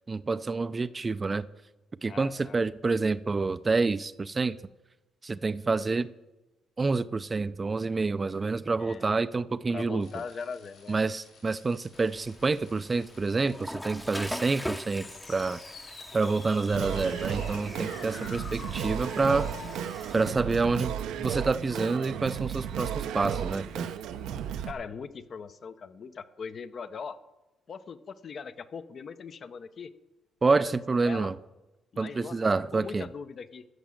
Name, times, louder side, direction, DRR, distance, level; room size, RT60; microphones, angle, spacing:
voice 1, 0.1-1.5 2.0-4.6 5.2-6.1 6.8-10.1 10.9-15.6 16.1-19.5 20.1-23.9 30.4-31.4 32.0-33.1, right 3 dB, 30° right, 15 dB, 0.4 m, -28 dB
voice 2, 2.1-2.6 8.8-9.1 9.7-11.0 24.6-27.2 27.7-29.9 31.0-31.3 31.9-32.4 32.7-33.6, left 6 dB, 50° left, 11 dB, 0.7 m, -40 dB
sound 1, 10.0-19.8, left 4 dB, 70° left, 4.9 m, -48 dB
Water / Toilet flush, 11.9-20.3, equal, 5° left, 0.7 m, -42 dB
Singing, 16.7-24.7, right 9 dB, 85° right, 0.7 m, -34 dB
14.0 x 6.1 x 7.7 m, 1.0 s
cardioid pair, 90°, 0 cm